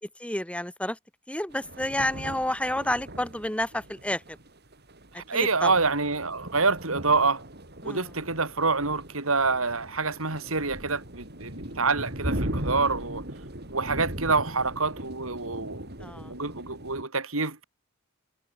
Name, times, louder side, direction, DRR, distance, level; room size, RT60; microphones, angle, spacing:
voice 1, 0.2-1.0 1.3-4.4 5.3-5.7 7.8-8.1 16.0-16.3, left 1 dB, 5° left, 6.1 m, -30 dB
sound 1, 1.5-17.0, right 1 dB, 50° right, 8.0 m, -38 dB
voice 2, 5.2-7.4 7.8-13.2 13.7-15.9 16.3-17.6, right 4 dB, 80° right, 4.9 m, -27 dB
head